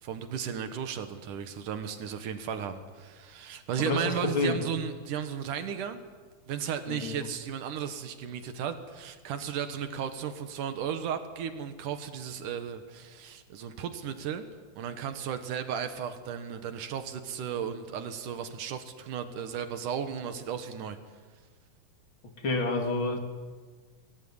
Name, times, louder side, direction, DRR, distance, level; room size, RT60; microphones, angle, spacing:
voice 1, 0.0-6.0 6.5-14.4 14.8-21.0, right 8 dB, 85° right, 8 dB, 3.0 m, -35 dB
voice 2, 3.8-4.6 6.9-7.3 22.4-23.2, left 3 dB, 40° left, 3 dB, 3.1 m, -29 dB
25.5 x 19.0 x 9.9 m, 1.5 s
omnidirectional pair, 3.6 m